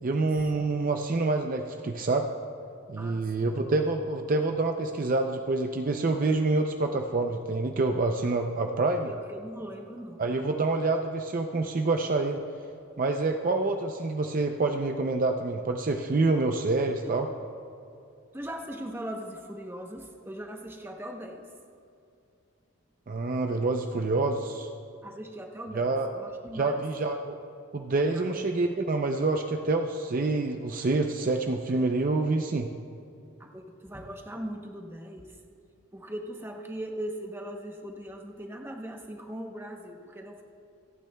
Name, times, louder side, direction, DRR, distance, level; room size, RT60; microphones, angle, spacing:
voice 1, 0.0-2.3 2.9-9.1 10.2-12.4 13.0-17.3 23.1-24.7 25.7-26.1 26.5-27.4 27.7-32.7, right 3 dB, 40° right, 4 dB, 0.4 m, -27 dB
voice 2, 3.0-3.6 8.2-8.3 9.1-10.4 17.0-17.1 18.3-21.5 25.0-26.8 28.1-28.3 31.7-31.9 33.4-35.4 35.9-40.4, right 1 dB, 10° right, 2 dB, 0.8 m, -40 dB
27.0 x 9.2 x 2.3 m, 2.6 s
head